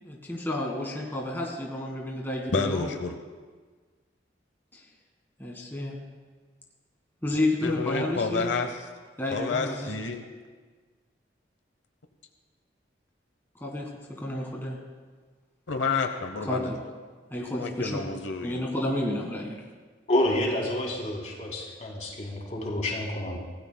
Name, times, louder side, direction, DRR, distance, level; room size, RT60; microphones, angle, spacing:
voice 1, 0.0-2.9 4.7-4.8 5.4-6.0 7.2-8.5 9.2-9.9 13.6-13.9 14.2-14.8 16.5-16.6 17.3-18.0 18.4-19.6, left 1 dB, 10° left, -1 dB, 1.6 m, -30 dB
voice 2, 2.5-3.2 7.6-8.8 9.3-10.3 15.7-16.8 17.6-18.6, left 4 dB, 80° left, 6 dB, 0.8 m, -29 dB
voice 3, 20.1-23.4, left 1 dB, 40° left, -3 dB, 3.3 m, -28 dB
25.0 x 16.5 x 2.2 m, 1.4 s
head